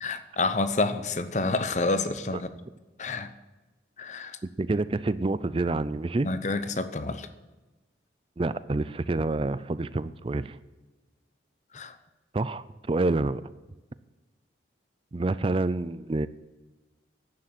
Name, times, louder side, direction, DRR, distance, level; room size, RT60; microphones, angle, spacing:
voice 1, 0.0-2.5 3.0-3.3 4.0-4.4 6.2-7.3 11.7-12.0, left 3 dB, 40° left, 11 dB, 0.8 m, -28 dB
voice 2, 4.6-6.3 8.4-10.6 12.3-13.4 15.1-16.3, right 2 dB, 30° right, 16 dB, 0.4 m, -27 dB
11.5 x 9.2 x 7.5 m, 1.1 s
head